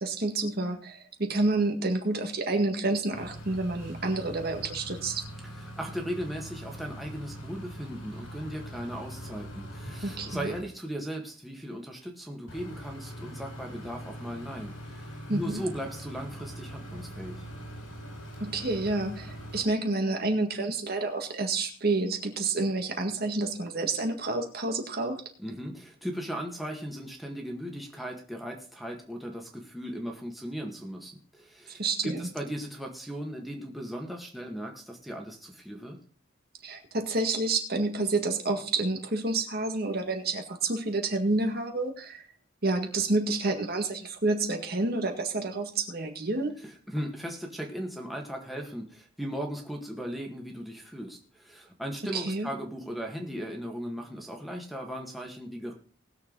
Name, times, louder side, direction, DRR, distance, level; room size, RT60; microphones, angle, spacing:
voice 1, 0.0-5.2 10.0-10.5 15.3-15.6 18.4-25.2 31.8-32.2 36.6-42.2 42.6-46.6 52.0-52.5, right 2 dB, 50° right, 4 dB, 1.9 m, -29 dB
sound 1, 3.1-10.6 12.5-19.6, equal, 90° left, 5.2 m, -42 dB
voice 2, 5.4-17.5 25.4-36.0 46.6-55.7, equal, ahead, 0 dB, 1.8 m, -37 dB
19.5 x 7.1 x 4.1 m, 0.43 s
head